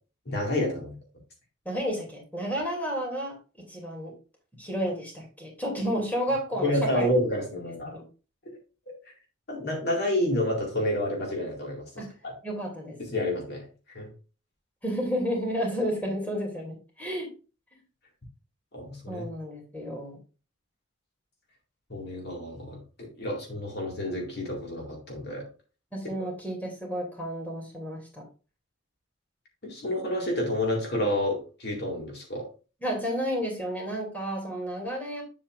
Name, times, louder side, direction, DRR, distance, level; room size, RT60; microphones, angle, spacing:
voice 1, 0.3-1.0 6.6-7.9 9.5-12.3 13.0-13.6 13.9-14.1 18.7-19.2 21.9-25.5 29.6-32.5, left 1 dB, 55° left, 0 dB, 2.1 m, -29 dB
voice 2, 1.6-4.1 4.6-7.1 7.9-8.1 12.0-12.1 12.4-12.9 14.8-17.3 19.1-20.2 25.9-28.3 32.8-35.2, equal, 10° left, -1 dB, 2.7 m, -31 dB
8.7 x 7.5 x 2.5 m, 0.33 s
head